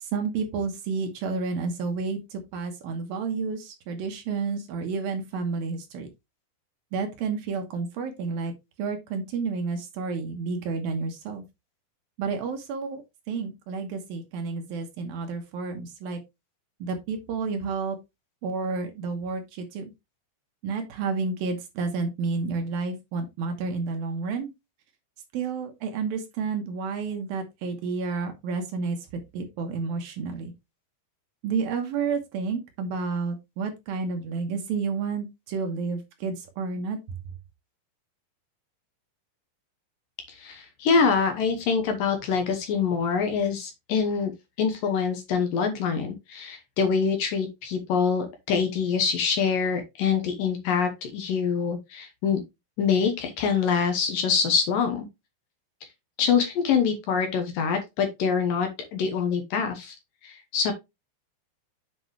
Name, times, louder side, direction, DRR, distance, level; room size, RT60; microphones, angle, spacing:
voice 1, 0.0-6.1 6.9-8.5 8.8-11.4 12.2-13.0 13.3-16.2 16.8-18.0 18.4-19.9 20.6-24.5 25.3-30.5 31.4-37.2, right 4 dB, 70° right, 2.7 m, -30 dB
voice 2, 40.3-44.3 44.6-52.4 52.8-55.1 56.2-60.0 60.2-60.7, left 6 dB, 70° left, 2.5 m, -25 dB
7.8 x 5.3 x 3.3 m
omnidirectional pair, 4.7 m